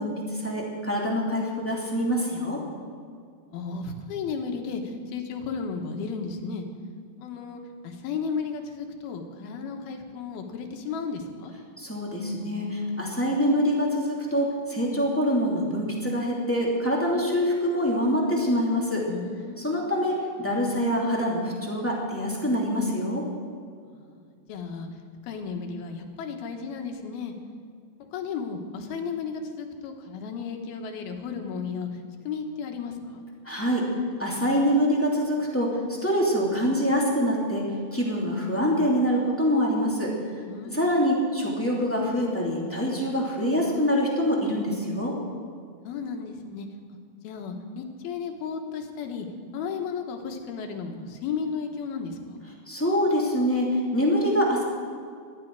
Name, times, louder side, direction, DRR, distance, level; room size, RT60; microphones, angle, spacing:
voice 1, 0.0-2.6 11.8-19.0 19.6-23.2 33.4-33.8 34.2-35.7 36.0-37.6 37.9-40.1 40.6-45.1 52.7-53.7 53.9-54.6, equal, 5° left, -3 dB, 2.0 m, -25 dB
voice 2, 3.5-4.8 5.1-6.7 7.2-11.5 19.1-19.8 23.9-24.2 24.5-24.9 25.3-27.3 28.1-31.9 32.2-33.2 40.5-41.0 45.8-46.7 47.2-49.3 49.5-52.4, left 5 dB, 75° left, 4 dB, 3.1 m, -34 dB
19.0 x 13.5 x 4.7 m, 2.2 s
omnidirectional pair, 4.5 m